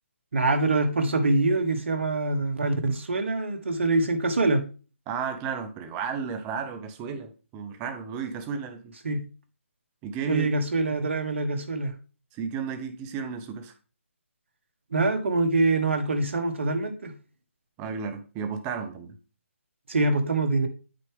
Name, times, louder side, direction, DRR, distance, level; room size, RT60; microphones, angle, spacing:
voice 1, 0.3-4.6 9.0-9.2 10.3-11.9 14.9-17.1 19.9-20.7, right 2 dB, 65° right, 1.5 m, -24 dB
voice 2, 5.1-8.9 10.0-10.5 12.3-13.7 17.8-19.2, right 5 dB, 15° right, 0.7 m, -33 dB
8.4 x 4.5 x 3.5 m
hypercardioid pair, 155°, 7 cm